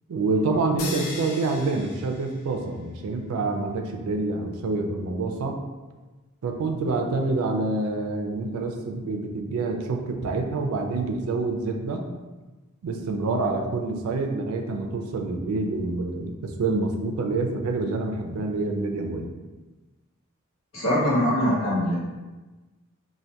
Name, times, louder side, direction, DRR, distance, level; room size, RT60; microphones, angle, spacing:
voice 1, 0.1-5.6 6.4-12.1 12.8-19.3, right 3 dB, 80° right, 3 dB, 0.3 m, -27 dB
sound 1, 0.8-2.9, left 3 dB, 90° left, 0.4 m, -37 dB
voice 2, 20.7-22.0, equal, 65° left, -7 dB, 0.8 m, -22 dB
2.2 x 2.1 x 2.7 m, 1.2 s
head